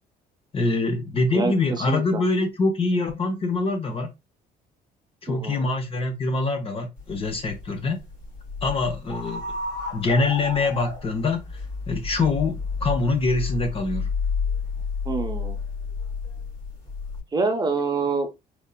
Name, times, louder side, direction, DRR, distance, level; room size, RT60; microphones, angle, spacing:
voice 1, 0.5-4.1 5.2-8.0 8.6-9.4 9.9-11.5 11.9-14.1, left 3 dB, 35° left, 0.8 m, -24 dB
voice 2, 1.9-2.2 5.3-5.7 15.0-15.6 17.3-18.3, right 4 dB, 25° right, 0.8 m, -26 dB
sound 1, 7.0-17.2, left 4 dB, 60° left, 2.4 m, -31 dB
4.4 x 2.8 x 2.2 m
cardioid pair, 110°, 17 cm